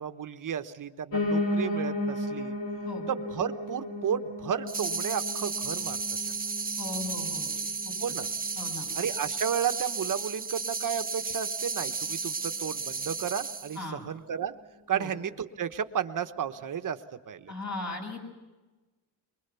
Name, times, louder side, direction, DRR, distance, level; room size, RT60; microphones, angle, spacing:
voice 1, 0.0-2.5 3.1-6.0 6.3-6.4 8.0-8.3 8.9-14.5 14.9-17.0 17.3-17.5, right 8 dB, 45° right, 9 dB, 1.3 m, -33 dB
Piano, 1.1-10.2 10.6-11.8 12.1-12.2 12.4-12.5 12.7-12.8 13.4-13.5, left 1 dB, 80° left, 5.0 m, -35 dB
sound 1, 4.7-13.8, right 4 dB, 20° right, 1.0 m, -33 dB
voice 2, 6.8-7.5 7.8-7.9 8.6-8.9 13.8-14.0 14.9-15.1 17.5-18.2, left 2 dB, 40° left, 2 dB, 7.1 m, -37 dB
24.0 x 23.0 x 7.0 m, 1.2 s
cardioid pair, 135°, 42 cm